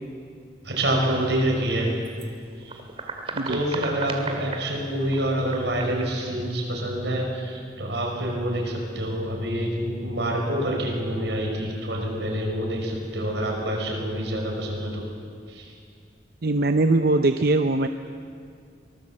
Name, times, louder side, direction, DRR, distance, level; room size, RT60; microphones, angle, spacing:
voice 1, 0.6-1.9 2.6-2.8 3.5-15.0 15.5-15.7, right 1 dB, 85° right, 0 dB, 5.8 m, -27 dB
sound 1, 0.8-2.3 2.5-4.7 5.1-6.2, right 3 dB, 35° right, 2.1 m, -36 dB
voice 2, 16.4-17.9, right 2 dB, 60° right, 7 dB, 0.7 m, -21 dB
24.0 x 19.0 x 7.7 m, 2.3 s
head